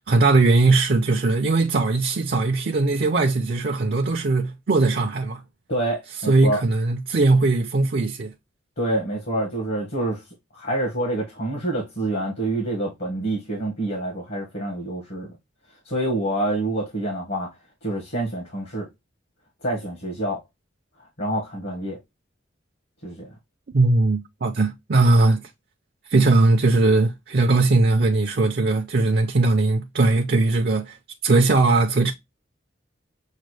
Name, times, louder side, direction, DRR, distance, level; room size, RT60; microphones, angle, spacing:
voice 1, 0.1-5.4 6.3-8.3 23.7-25.5 26.1-31.0 31.2-32.1, right 3 dB, 50° right, 0.5 m, -19 dB
voice 2, 5.7-6.6 8.8-10.2 10.5-15.3 15.8-17.5 17.8-18.9 19.6-20.4 21.2-22.0 23.0-23.3, right 1 dB, 60° left, 1.5 m, -27 dB
6.4 x 2.2 x 3.1 m
head